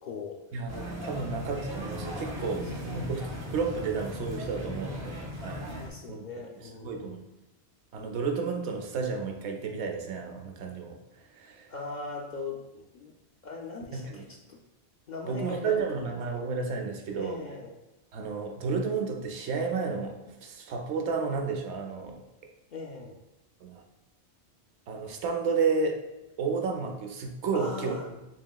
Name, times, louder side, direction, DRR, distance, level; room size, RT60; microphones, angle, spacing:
voice 1, 0.0-0.4 2.8-2.9 5.8-7.2 11.7-13.1 13.4-14.6 15.1-16.1 17.1-17.7 22.7-23.2 27.5-28.1, left 3 dB, 55° left, -1 dB, 0.5 m, -40 dB
voice 2, 0.5-2.7 2.9-5.7 6.1-6.3 6.6-7.2 7.9-11.0 11.3-11.7 13.9-14.3 15.3-17.4 18.1-22.2 23.6-23.8 24.9-26.0 26.4-28.0, right 5 dB, 80° right, 3 dB, 0.9 m, -32 dB
sound 1, 0.7-5.9, equal, 30° right, 0.7 m, -37 dB
5.2 x 2.9 x 2.2 m, 1.0 s
omnidirectional pair, 1.1 m